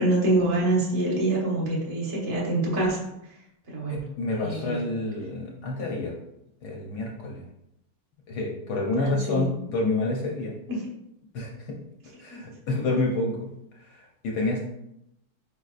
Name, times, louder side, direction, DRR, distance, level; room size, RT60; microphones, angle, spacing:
voice 1, 0.0-3.0 3.7-4.0 4.4-4.8 9.0-9.5 10.7-10.8, right 2 dB, 35° right, -4 dB, 0.6 m, -25 dB
voice 2, 3.9-6.1 6.6-7.4 8.3-10.6 11.3-11.8 12.2-13.5 13.7-14.6, left 2 dB, 65° left, -1 dB, 1.0 m, -28 dB
5.0 x 3.9 x 2.4 m, 0.82 s
omnidirectional pair, 2.3 m